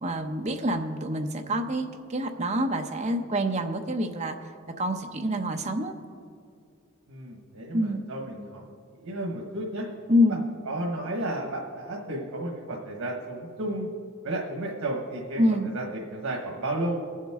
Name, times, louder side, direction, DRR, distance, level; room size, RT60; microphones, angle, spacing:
voice 1, 0.0-4.4 4.8-5.9 7.7-8.0 10.1-10.4 15.4-15.7, equal, 30° right, 4 dB, 0.8 m, -26 dB
voice 2, 7.1-8.6 9.0-9.9 10.6-13.9 14.2-15.4 15.7-17.0, right 1 dB, 85° right, -1 dB, 1.4 m, -32 dB
22.0 x 7.4 x 3.6 m, 2.3 s
head